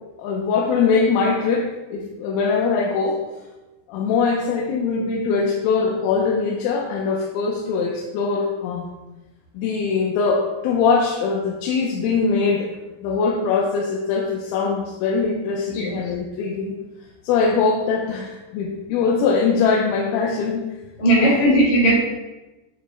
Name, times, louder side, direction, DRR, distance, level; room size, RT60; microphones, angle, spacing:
voice 1, 0.2-3.2 3.9-8.9 9.6-12.7 13.0-16.8 17.2-20.6 21.2-21.3, left 5 dB, 90° left, -2 dB, 3.4 m, -22 dB
voice 2, 21.0-22.0, right 1 dB, 45° left, -7 dB, 2.9 m, -17 dB
9.7 x 6.7 x 2.2 m, 1.1 s
omnidirectional pair, 5.7 m